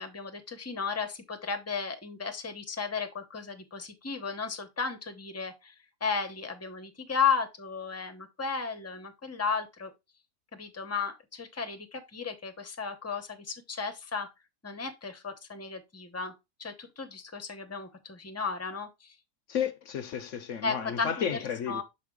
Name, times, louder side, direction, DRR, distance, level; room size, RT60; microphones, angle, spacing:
voice 1, 0.0-5.7 6.0-9.9 10.5-14.3 14.6-16.3 16.6-19.1 20.6-21.4 21.7-21.8, left 5 dB, 15° left, 0.5 m, -34 dB
voice 2, 19.5-21.8, left 8 dB, 65° left, 0.8 m, -32 dB
7.0 x 4.3 x 3.6 m
omnidirectional pair, 1.7 m